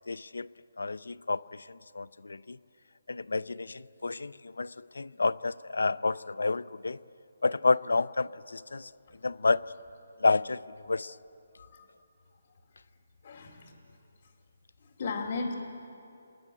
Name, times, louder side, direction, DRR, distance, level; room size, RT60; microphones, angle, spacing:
voice 1, 0.1-0.5 0.8-2.6 3.1-7.0 7.4-8.9 9.2-9.6 10.2-10.6 10.9-11.1, left 3 dB, 85° left, 18 dB, 0.5 m, -30 dB
voice 2, 13.2-13.7 15.0-15.5, left 4 dB, 45° left, -4 dB, 2.3 m, -34 dB
26.5 x 10.5 x 9.7 m, 2.7 s
hypercardioid pair, 160°, 0 cm